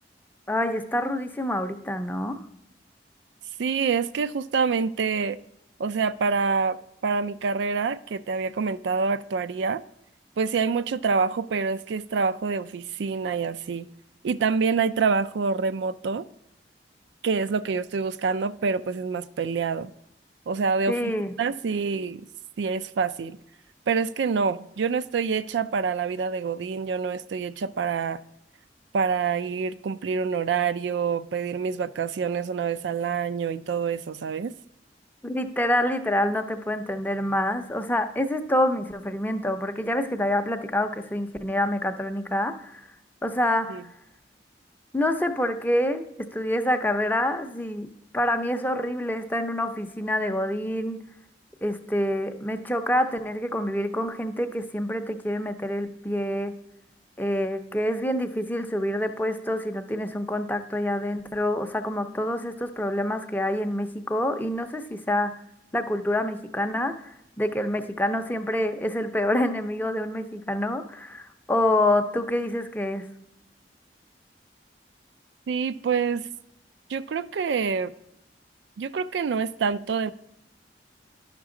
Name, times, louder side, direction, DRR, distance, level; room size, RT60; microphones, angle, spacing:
voice 1, 0.5-2.4 20.9-21.3 35.2-42.8 43.2-43.8 44.9-46.0 46.3-51.0 51.6-56.6 57.2-65.4 65.7-73.1, left 1 dB, 10° left, 0.5 m, -27 dB
voice 2, 3.6-5.4 5.8-9.8 10.4-13.9 14.2-16.3 17.2-19.9 20.5-21.1 21.4-22.3 22.6-23.4 23.9-28.2 28.9-34.5 43.7-43.8 75.5-76.3 76.9-77.9 78.8-80.1, right 5 dB, 80° right, 0.4 m, -26 dB
11.0 x 6.0 x 3.7 m
head